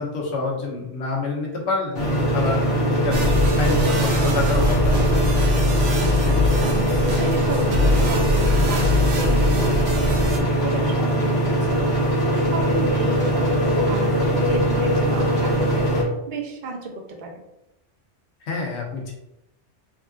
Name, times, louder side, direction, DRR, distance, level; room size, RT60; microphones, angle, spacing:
voice 1, 0.0-2.0 2.3-2.6 2.9-5.1 18.5-19.1, left 3 dB, 70° left, -1 dB, 1.0 m, -27 dB
sound 1, 2.0-16.0, equal, 90° left, 1.1 m, -21 dB
sound 2, 3.1-10.4, left 1 dB, 85° right, 0.9 m, -22 dB
voice 2, 6.3-15.9 16.3-17.4, right 3 dB, 55° right, 1 dB, 0.6 m, -33 dB
3.5 x 2.4 x 2.4 m, 0.88 s
omnidirectional pair, 1.2 m